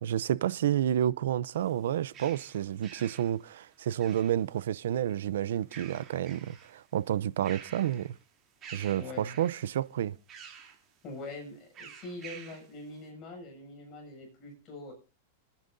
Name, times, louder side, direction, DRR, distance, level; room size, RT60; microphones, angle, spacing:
voice 1, 0.0-8.1 8.7-10.2, right 11 dB, 80° right, 0.6 m, -30 dB
sound 1, 1.6-4.7 5.5-6.8 7.2-8.2 8.6-9.7 10.3-10.8 11.7-12.7, right 7 dB, 25° right, 3.1 m, -49 dB
voice 2, 9.0-9.4 11.0-14.9, left 2 dB, 35° left, 7.0 m, -43 dB
30.0 x 10.5 x 2.7 m
supercardioid pair, 145°, 0 cm